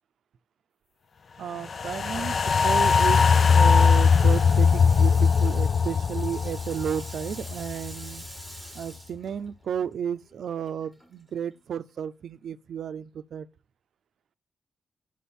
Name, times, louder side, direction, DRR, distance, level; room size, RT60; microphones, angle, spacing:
voice 1, 1.4-8.2 8.7-13.5, right 8 dB, 70° right, 0.5 m, -33 dB
sound 1, 1.6-8.0 8.4-8.5, left 5 dB, 45° left, 0.3 m, -20 dB
Water tap faucet, 2.1-9.9 10.2-11.6, right 1 dB, 5° left, 4.1 m, -44 dB
7.3 x 6.1 x 4.2 m
wide cardioid pair, 135°, 0 cm